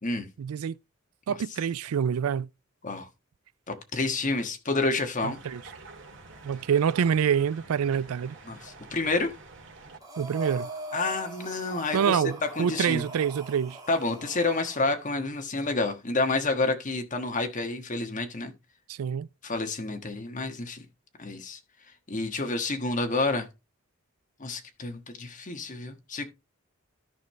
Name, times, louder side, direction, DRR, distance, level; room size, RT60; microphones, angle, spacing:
voice 1, 0.4-0.8 1.3-2.5 5.2-5.6 6.4-8.4 10.2-10.7 11.9-13.8 18.9-19.3, right 7 dB, 90° right, 0.4 m, -26 dB
voice 2, 3.7-5.4 8.5-9.3 10.9-13.0 13.9-18.5 19.4-20.8 21.2-21.6 22.1-23.5 24.4-26.2, left 3 dB, 35° left, 1.4 m, -29 dB
sound 1, 5.2-10.0, right 3 dB, 60° right, 2.3 m, -48 dB
Breathing, 10.0-14.9, right 2 dB, 15° right, 1.8 m, -41 dB
13.5 x 5.2 x 3.2 m
head